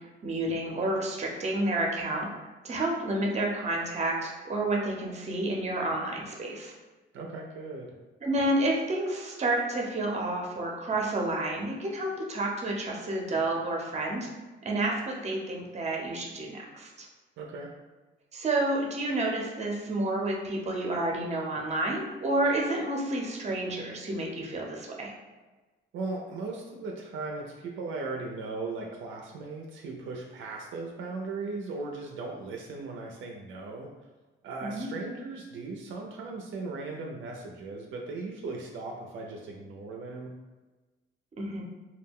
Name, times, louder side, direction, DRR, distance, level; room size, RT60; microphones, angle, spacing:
voice 1, 0.2-2.3 2.6-6.7 8.2-14.3 14.6-17.1 18.3-25.1 34.6-34.9 41.4-41.6, right 1 dB, 35° right, 0 dB, 0.7 m, -30 dB
voice 2, 7.1-7.9 17.4-17.7 25.9-33.9 34.4-40.3, right 3 dB, 75° right, 0 dB, 0.4 m, -37 dB
2.3 x 2.1 x 3.5 m, 1.2 s
cardioid pair, 90°, 20 cm